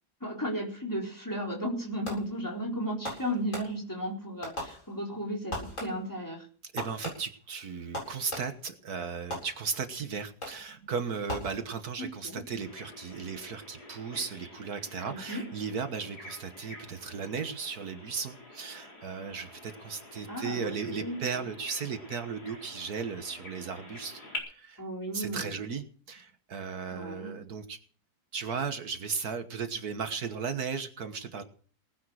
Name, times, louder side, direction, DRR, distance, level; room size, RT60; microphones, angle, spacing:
voice 1, 0.2-6.5 12.0-12.4 15.1-15.5 20.3-21.5 24.8-25.5 26.9-27.4, equal, 10° left, -1 dB, 4.1 m, -35 dB
Fireworks, 2.0-2.5 3.0-4.0 4.4-5.2 5.5-6.2 6.8-8.7 9.3-9.9 10.4-10.8 11.3-12.0, left 1 dB, 50° left, 8.3 m, -40 dB
voice 2, 6.7-24.2 24.5-24.8 25.1-27.8 28.3-31.4, right 5 dB, 70° right, 8 dB, 1.8 m, -36 dB
Bird vocalization bird call bird song, 12.6-24.4, left 1 dB, 70° left, 5.1 m, -47 dB
19.0 x 10.0 x 6.3 m, 0.43 s
omnidirectional pair, 1.7 m